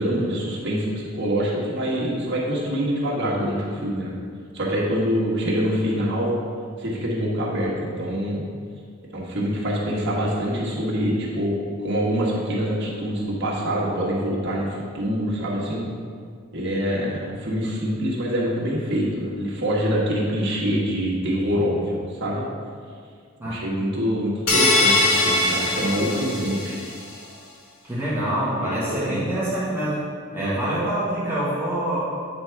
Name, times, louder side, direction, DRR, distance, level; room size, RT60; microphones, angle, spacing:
voice 1, 0.0-4.1 4.5-6.3 6.8-8.4 9.1-15.8 16.5-22.4 23.4-26.8 28.6-29.2 30.3-30.6, equal, 55° right, -5 dB, 1.5 m, -25 dB
sound 1, 24.5-26.9, left 2 dB, 85° left, 1.3 m, -21 dB
voice 2, 27.8-30.1 30.3-32.0, right 1 dB, 10° right, -10 dB, 1.5 m, -26 dB
8.5 x 3.6 x 4.5 m, 2.1 s
head